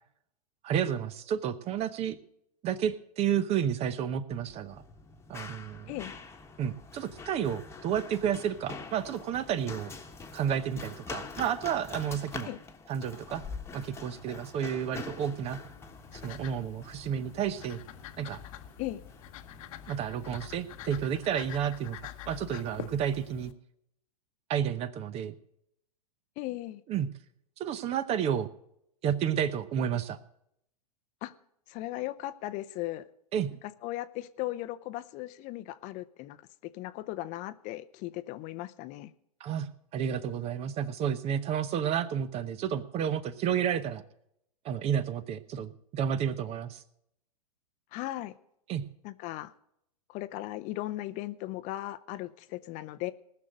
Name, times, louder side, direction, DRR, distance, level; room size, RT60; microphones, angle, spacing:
voice 1, 0.6-2.2 2.6-4.8 5.3-5.9 6.6-9.9 10.3-12.5 12.9-13.4 13.7-15.6 16.2-17.8 18.2-18.4 19.9-22.0 22.3-23.5 24.5-25.3 26.9-27.1 27.6-28.5 29.0-30.2 33.3-33.5 39.4-44.0 44.6-46.8 48.7-48.9, right 9 dB, 30° right, 15 dB, 0.8 m, -31 dB
Run, 4.3-21.6, left 4 dB, 15° left, 1.4 m, -45 dB
sound 1, 15.1-23.5, left 12 dB, 55° left, 1.1 m, -46 dB
voice 2, 26.4-26.8 31.2-31.3 31.7-33.0 33.8-36.5 36.7-39.1 47.9-48.3 49.0-49.5 50.1-53.1, left 16 dB, 40° left, 14 dB, 0.7 m, -37 dB
19.0 x 6.5 x 6.4 m, 0.74 s
hypercardioid pair, 110°, 20 cm